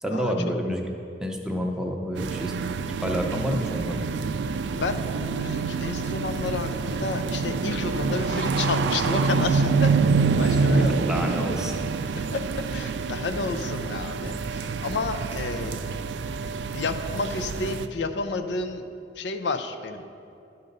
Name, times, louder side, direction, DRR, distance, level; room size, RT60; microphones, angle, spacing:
voice 1, 0.0-0.8 1.2-2.5 3.0-4.1 10.4-11.7, equal, 5° right, 1 dB, 0.6 m, -29 dB
sound 1, 2.1-17.9, right 4 dB, 75° right, 0.3 m, -26 dB
voice 2, 4.7-10.0 10.4-10.9 12.2-15.8 16.7-18.8 19.2-20.0, left 3 dB, 80° left, 9 dB, 0.5 m, -31 dB
12.0 x 4.0 x 5.3 m, 2.5 s
head